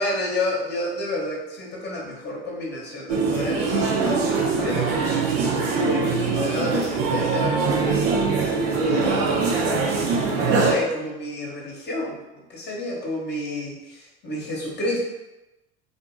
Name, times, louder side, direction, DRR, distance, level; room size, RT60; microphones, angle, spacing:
voice 1, 0.0-8.1 8.7-10.0 10.3-12.2 12.5-15.0, left 1 dB, 35° left, -3 dB, 0.8 m, -30 dB
sound 1, 3.1-10.7, right 4 dB, 70° right, 0.6 m, -22 dB
2.7 x 2.4 x 2.5 m, 0.98 s
hypercardioid pair, 80°, 32 cm